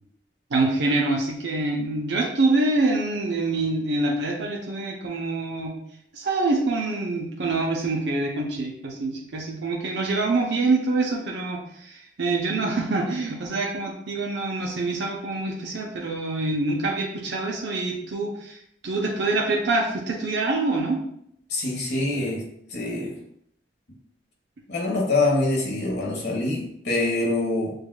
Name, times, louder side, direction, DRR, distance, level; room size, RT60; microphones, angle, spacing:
voice 1, 0.5-5.7 6.1-18.6 18.8-21.0, right 2 dB, 85° right, -1 dB, 0.6 m, -25 dB
voice 2, 21.5-22.4 22.7-23.2 24.7-27.7, left 2 dB, 75° left, -2 dB, 1.1 m, -25 dB
6.4 x 2.3 x 2.2 m, 0.71 s
head